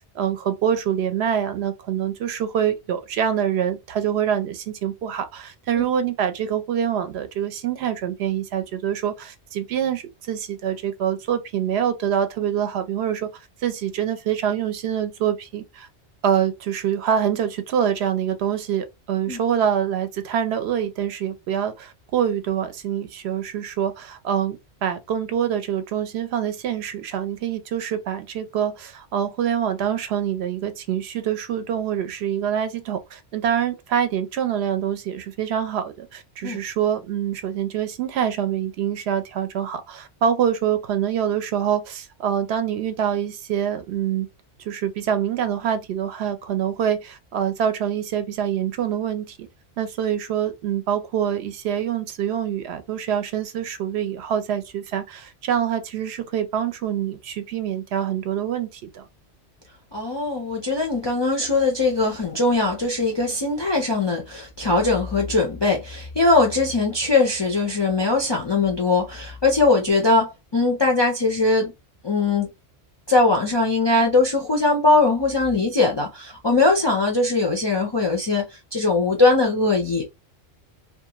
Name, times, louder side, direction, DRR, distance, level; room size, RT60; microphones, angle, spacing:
voice 1, 0.1-13.3 13.6-15.9 16.2-44.3 44.6-49.5 49.8-59.0, right 9 dB, 75° right, 0.8 m, -25 dB
voice 2, 59.9-71.7 72.0-72.5 73.1-78.5 78.7-80.1, left 3 dB, 40° left, 0.3 m, -20 dB
2.5 x 2.3 x 2.8 m
omnidirectional pair, 1.1 m